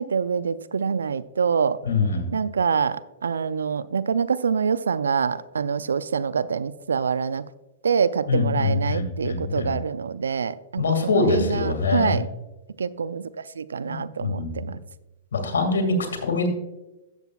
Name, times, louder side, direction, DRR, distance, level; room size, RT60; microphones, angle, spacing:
voice 1, 0.0-1.8 2.3-7.5 7.8-12.3 12.8-14.8, right 6 dB, 80° right, 0.4 m, -25 dB
voice 2, 1.8-2.4 8.3-9.8 10.8-12.2 13.8-14.7 15.3-16.5, left 3 dB, 80° left, 2.1 m, -24 dB
13.0 x 8.0 x 2.3 m
hypercardioid pair, 115°, 0 cm